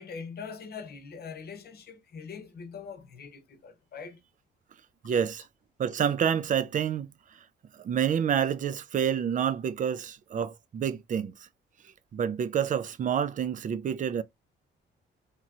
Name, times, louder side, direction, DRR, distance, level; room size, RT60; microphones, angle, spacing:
voice 1, 0.0-4.2 5.0-5.2, left 5 dB, 55° left, 0.8 m, -42 dB
voice 2, 5.0-5.5 5.8-7.1 7.8-11.3 12.1-14.2, right 8 dB, 40° right, 0.4 m, -28 dB
3.0 x 2.9 x 2.4 m
cardioid pair, 90°, 20 cm